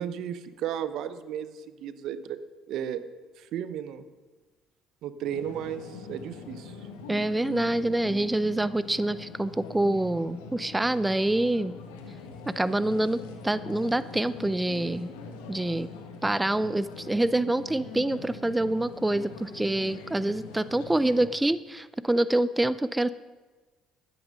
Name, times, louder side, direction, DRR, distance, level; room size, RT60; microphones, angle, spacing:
voice 1, 0.0-2.4 2.7-3.1 3.4-4.0 5.0-6.8, right 9 dB, 65° right, 13 dB, 0.8 m, -34 dB
sound 1, 5.2-21.3, left 4 dB, 85° left, 1.5 m, -42 dB
voice 2, 7.1-11.7 12.6-15.1 15.5-15.9 16.2-23.1, right 1 dB, 10° right, 16 dB, 0.4 m, -26 dB
13.0 x 9.5 x 5.3 m, 1.3 s
hypercardioid pair, 65°, 0 cm